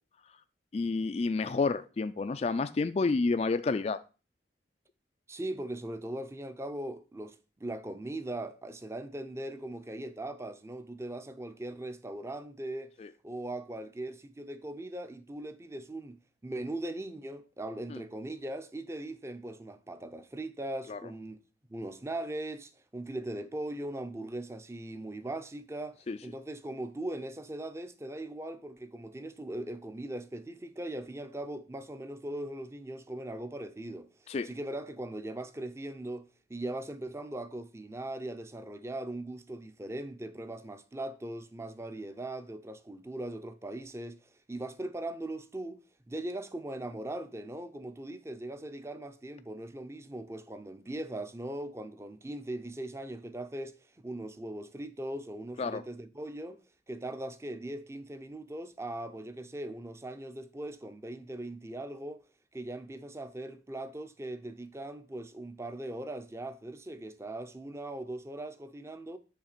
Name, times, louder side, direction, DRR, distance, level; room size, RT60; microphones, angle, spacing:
voice 1, 0.7-4.0 13.0-13.1 17.9-18.0 20.9-21.0 26.1-26.2 34.3-34.5 55.6-55.8, left 4 dB, 35° left, 0.3 m, -30 dB
voice 2, 5.3-12.9 13.2-16.2 16.4-21.4 21.7-45.8 46.1-56.6 56.9-62.2 62.5-69.2, right 1 dB, 15° right, 0.5 m, -40 dB
8.8 x 3.3 x 6.7 m
head